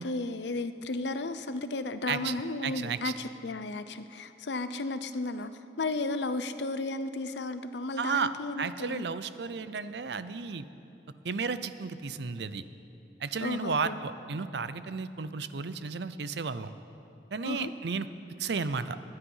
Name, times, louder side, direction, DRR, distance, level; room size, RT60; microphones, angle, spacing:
voice 1, 0.0-5.5 5.8-9.1 13.4-14.0 17.4-17.7, left 2 dB, 70° left, 11 dB, 0.6 m, -34 dB
voice 2, 2.6-3.1 8.0-8.3 8.6-10.7 11.2-12.6 13.2-16.7 17.3-18.1 18.4-19.0, right 5 dB, 65° right, 13 dB, 0.6 m, -33 dB
22.5 x 9.9 x 5.5 m, 2.7 s
head